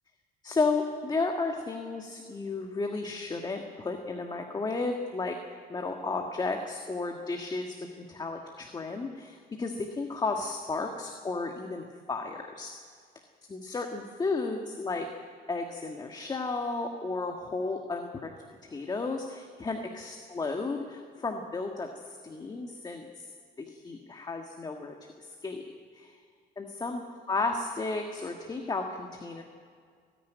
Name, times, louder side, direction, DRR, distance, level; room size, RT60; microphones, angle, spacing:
voice 1, 0.4-5.4 5.7-12.7 13.5-15.1 15.5-18.3 18.6-23.3 23.6-25.6 25.9-26.2 26.6-27.0 27.3-29.4, left 3 dB, 25° left, 3 dB, 1.6 m, -33 dB
29.0 x 10.0 x 9.2 m, 2.1 s
cardioid pair, 110°, 17 cm